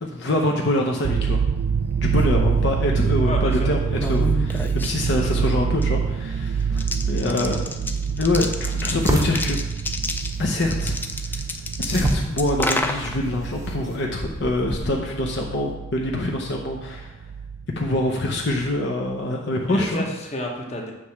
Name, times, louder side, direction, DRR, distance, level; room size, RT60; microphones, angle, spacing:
voice 1, 0.0-1.4 2.0-7.6 8.1-9.6 10.4-11.0 11.8-17.1 17.8-20.0, left 1 dB, 65° left, 0 dB, 0.7 m, -25 dB
sound 1, 1.0-18.1 18.4-18.7, right 6 dB, 75° right, 0.3 m, -26 dB
sound 2, 1.7-15.7, left 2 dB, 10° left, 0.4 m, -32 dB
voice 2, 3.2-3.7 5.2-5.5 19.7-20.9, left 1 dB, 35° left, 0 dB, 1.1 m, -31 dB
sound 3, 7.7-14.1, right 1 dB, 20° right, 0.7 m, -31 dB
7.7 x 3.2 x 5.8 m, 1.0 s
head